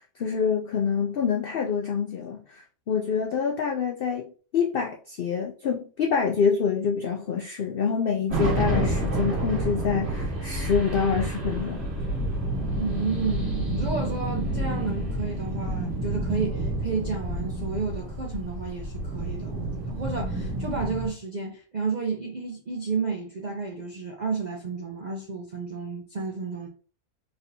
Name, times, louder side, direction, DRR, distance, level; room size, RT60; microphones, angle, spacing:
voice 1, 0.2-4.2 4.5-11.8, left 6 dB, 85° left, 0.5 m, -26 dB
sound 1, 8.3-21.1, right 1 dB, 45° right, 1.7 m, -29 dB
voice 2, 12.8-26.7, right 4 dB, 65° right, 0.4 m, -31 dB
4.2 x 3.3 x 2.6 m
omnidirectional pair, 1.6 m